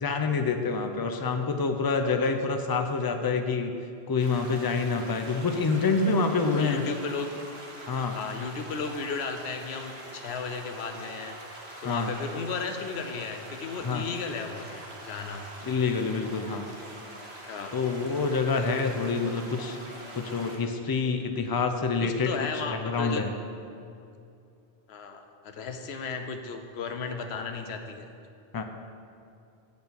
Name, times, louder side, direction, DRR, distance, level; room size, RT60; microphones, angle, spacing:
voice 1, 0.0-3.7 4.1-6.8 7.9-8.2 11.8-12.1 13.8-14.0 15.6-16.7 17.7-19.8 20.1-22.3 22.8-23.3 28.5-28.6, left 4 dB, 35° left, 5 dB, 0.3 m, -27 dB
sound 1, 4.2-20.6, right 1 dB, 65° right, 1.5 m, -44 dB
voice 2, 6.5-7.3 8.1-11.4 11.8-15.4 17.5-17.7 22.0-23.2 24.9-28.1, left 4 dB, 70° left, 6 dB, 0.9 m, -35 dB
8.1 x 4.4 x 6.8 m, 2.5 s
omnidirectional pair, 1.2 m